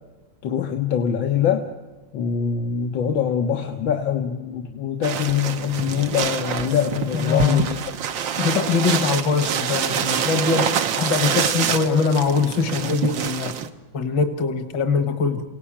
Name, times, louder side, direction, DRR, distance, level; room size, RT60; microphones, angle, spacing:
voice 1, 0.4-1.7 2.1-7.8, left 8 dB, 85° left, 3 dB, 1.9 m, -23 dB
sound 1, 5.0-13.7, right 8 dB, 80° right, 1.8 m, -26 dB
voice 2, 7.1-7.7 8.4-10.7 11.0-13.5 13.9-15.4, left 5 dB, 65° left, 8 dB, 1.9 m, -22 dB
28.5 x 17.5 x 8.7 m, 1.3 s
omnidirectional pair, 2.1 m